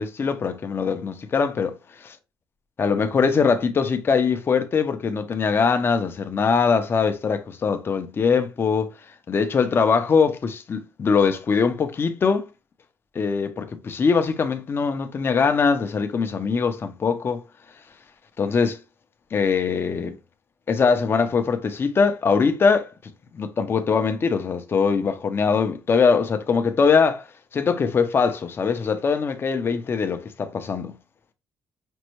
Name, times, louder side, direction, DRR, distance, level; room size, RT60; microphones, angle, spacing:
voice 1, 0.0-1.8 2.0-2.2 2.8-8.9 9.3-12.5 13.1-17.4 18.4-18.8 19.3-20.2 20.7-27.3 27.5-31.0, left 5 dB, 30° left, 0.5 m, -22 dB
5.2 x 2.2 x 3.0 m
cardioid pair, 150°, 7 cm